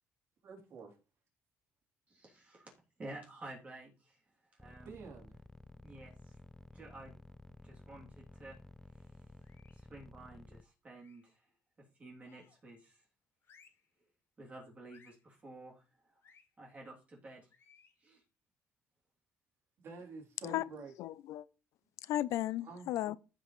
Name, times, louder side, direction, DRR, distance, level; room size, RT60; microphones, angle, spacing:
voice 1, 0.4-1.0 4.8-5.4 19.8-20.9 22.6-22.9, right 4 dB, 55° right, 3.4 m, -49 dB
voice 2, 2.1-2.7 3.0-4.2 4.5-5.0 5.8-6.4 6.7-7.1 7.6-8.6 8.9-9.3 9.7-11.5 12.0-13.0 14.4-16.2 16.6-17.5 18.0-18.2, right 2 dB, 25° right, 2.9 m, -52 dB
sound 1, 4.6-10.6, left 1 dB, 5° left, 0.4 m, -54 dB
sound 2, 9.4-9.9 10.9-11.4 12.2-12.7 13.4-13.9 14.9-15.3 16.2-16.5 17.5-18.0, left 6 dB, 50° left, 1.9 m, -65 dB
voice 3, 20.4-21.5 22.0-23.2, left 14 dB, 75° left, 0.5 m, -36 dB
15.0 x 5.1 x 3.2 m
cardioid pair, 110°, 5 cm